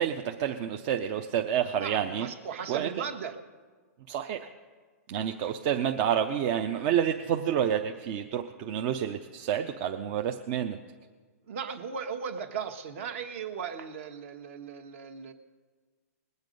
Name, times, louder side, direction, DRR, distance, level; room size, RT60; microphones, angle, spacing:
voice 1, 0.0-2.3 2.7-3.0 4.1-4.5 5.1-10.8, right 9 dB, 35° right, 5 dB, 0.6 m, -29 dB
voice 2, 1.8-3.3 5.4-5.5 11.5-15.3, right 7 dB, 55° right, 7 dB, 1.3 m, -37 dB
20.5 x 8.1 x 5.3 m, 1.5 s
hypercardioid pair, 150°, 9 cm